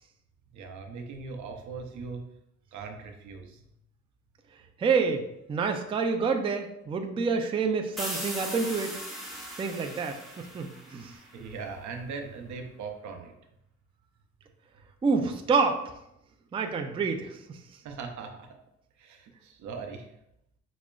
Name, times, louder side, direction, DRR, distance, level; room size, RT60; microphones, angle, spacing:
voice 1, 0.5-2.2 2.7-3.6 11.1-13.3 17.8-18.6 19.0-20.1, right 4 dB, 75° right, 4 dB, 0.6 m, -40 dB
voice 2, 4.8-5.2 5.5-8.9 9.6-10.2 10.5-11.1 15.0-15.8 16.5-17.6, right 5 dB, 20° right, 5 dB, 0.3 m, -27 dB
sound 1, 8.0-11.6, equal, ahead, 0.9 m, -39 dB
5.8 x 2.1 x 2.3 m, 0.81 s
cardioid pair, 90°, 30 cm